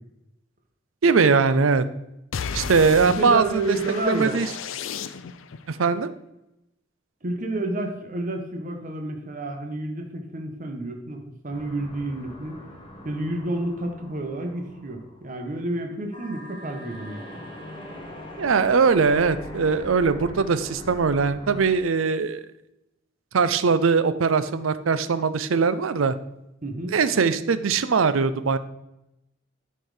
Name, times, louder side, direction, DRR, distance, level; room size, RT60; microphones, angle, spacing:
voice 1, 1.0-1.8 2.5-3.8 4.1-4.5 5.7-6.1 18.4-22.5 23.3-26.2 26.9-28.6, right 5 dB, 85° right, 13 dB, 0.5 m, -21 dB
sound 1, 2.3-5.6, left 6 dB, 75° left, 0.5 m, -34 dB
voice 2, 3.1-4.4 7.2-12.6 13.0-17.2 26.6-27.0, right 2 dB, 40° right, 4 dB, 1.0 m, -30 dB
sound 2, 11.5-15.9 16.1-21.7, left 1 dB, 25° left, 1.5 m, -42 dB
10.0 x 4.5 x 4.9 m, 0.89 s
head